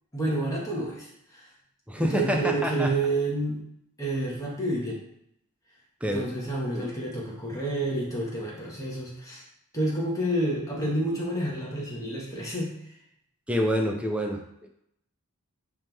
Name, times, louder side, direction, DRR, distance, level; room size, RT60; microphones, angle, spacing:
voice 1, 0.1-1.4 2.0-3.6 4.0-5.0 6.1-9.4 9.7-12.7, right 1 dB, 15° left, -4 dB, 1.8 m, -29 dB
voice 2, 1.9-2.9 6.0-6.3 6.7-6.9 13.5-14.7, equal, 5° right, 1 dB, 0.8 m, -27 dB
8.6 x 3.6 x 3.5 m, 0.75 s
head